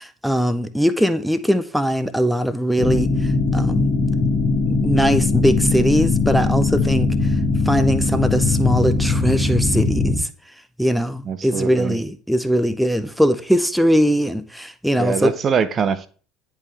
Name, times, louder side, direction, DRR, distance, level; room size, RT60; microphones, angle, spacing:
voice 1, 0.0-4.0 4.7-7.3 7.7-10.3 10.8-15.3, equal, ahead, 0.6 m, -20 dB
sound 1, 2.8-10.2, left 3 dB, 35° left, 1.6 m, -20 dB
voice 2, 11.3-12.0 15.0-16.1, right 6 dB, 40° right, 0.7 m, -22 dB
10.0 x 3.6 x 3.3 m
hypercardioid pair, 70°, 0 cm